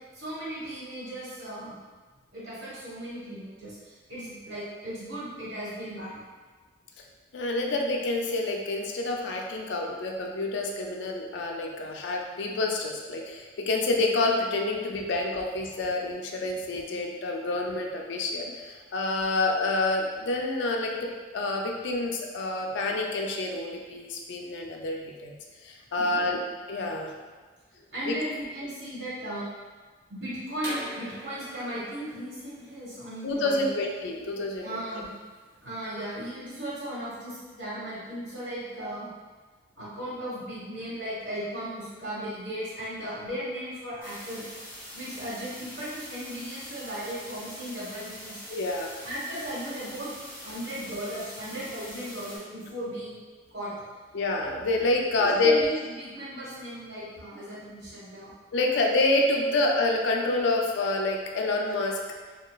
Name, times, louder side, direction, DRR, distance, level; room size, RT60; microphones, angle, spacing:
voice 1, 0.1-1.7 2.3-6.2 26.0-26.3 27.1-27.2 27.7-29.5 30.1-33.7 34.6-35.1 35.6-39.1 39.7-44.4 44.9-48.4 49.0-50.1 50.4-53.1 53.5-53.7 55.2-58.3, right 1 dB, 75° right, -9 dB, 1.2 m, -36 dB
voice 2, 7.3-25.3 25.6-26.4 26.7-27.1 28.1-28.2 33.2-34.8 48.5-48.9 50.5-50.6 54.1-55.5 58.5-62.0, left 2 dB, 70° left, 1 dB, 0.4 m, -28 dB
sound 1, 30.6-36.2, right 1 dB, 60° right, 0.8 m, -43 dB
sound 2, 44.0-52.4, equal, 10° left, 0.8 m, -43 dB
2.9 x 2.2 x 2.3 m, 1.4 s
head